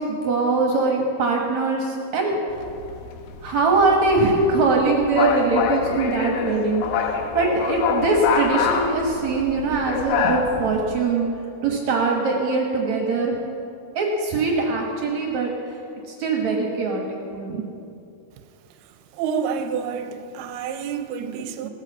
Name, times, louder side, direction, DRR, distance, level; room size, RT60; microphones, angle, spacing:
voice 1, 0.0-2.4 3.4-11.3 11.6-13.4 14.0-15.5 16.1-17.6 21.6-21.7, right 3 dB, 60° right, 0 dB, 2.2 m, -22 dB
sound 1, 2.5-11.0, left 7 dB, 85° left, 2.9 m, -26 dB
voice 2, 19.1-21.7, right 6 dB, 85° right, 8 dB, 2.6 m, -28 dB
17.0 x 9.0 x 6.9 m, 2.6 s
omnidirectional pair, 4.5 m